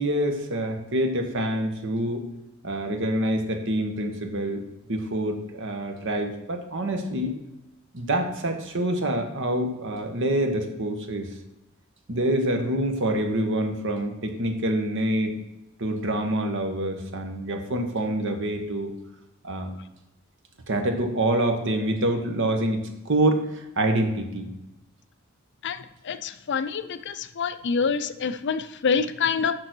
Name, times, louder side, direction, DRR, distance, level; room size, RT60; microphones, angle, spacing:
voice 1, 0.0-2.2 2.6-4.6 4.9-7.3 7.9-11.3 12.1-15.3 15.8-18.9 19.4-19.7 20.7-24.5, right 1 dB, 65° right, 5 dB, 1.2 m, -26 dB
voice 2, 26.1-29.5, left 5 dB, 55° left, 11 dB, 0.5 m, -26 dB
6.8 x 6.1 x 6.1 m, 0.96 s
head